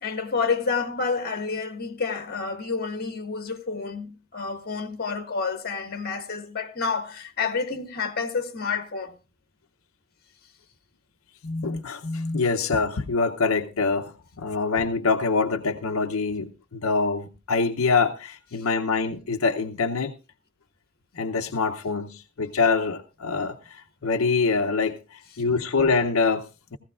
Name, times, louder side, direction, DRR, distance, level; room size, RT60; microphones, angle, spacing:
voice 1, 0.0-9.1, left 5 dB, 50° left, 1.7 m, -29 dB
voice 2, 11.4-14.1 14.4-20.1 21.2-26.8, left 4 dB, 85° left, 0.7 m, -25 dB
17.0 x 15.0 x 2.4 m
head